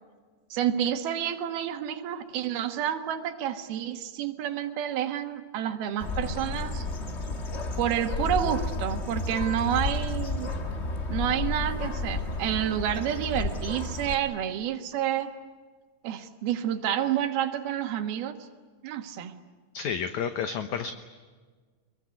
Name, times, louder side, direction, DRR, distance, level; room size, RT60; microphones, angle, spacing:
voice 1, 0.5-6.8 7.8-10.5 11.1-15.3 16.0-18.4 18.8-19.3, right 10 dB, 85° right, 6 dB, 3.4 m, -29 dB
Bird, 6.0-14.1, left 2 dB, 50° left, 0.8 m, -32 dB
voice 2, 19.7-20.9, left 7 dB, 65° left, 9 dB, 2.1 m, -30 dB
25.0 x 23.0 x 9.5 m, 1.5 s
omnidirectional pair, 4.3 m